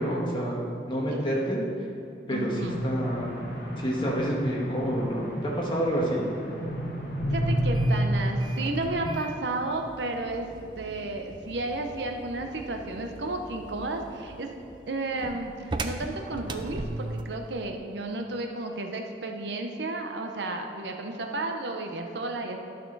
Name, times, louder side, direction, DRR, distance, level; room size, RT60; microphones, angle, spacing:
voice 1, 0.0-1.6 2.3-3.4 3.8-6.2, equal, 25° left, -4 dB, 1.5 m, -28 dB
voice 2, 2.3-2.8 7.3-10.5 10.8-14.5 14.9-22.6, right 2 dB, 80° right, 4 dB, 0.8 m, -32 dB
sound 1, 2.5-9.1, equal, 50° left, 1.7 m, -30 dB
sound 2, 7.5-17.4, right 2 dB, 25° right, 0.4 m, -40 dB
12.0 x 6.2 x 4.0 m, 2.8 s
head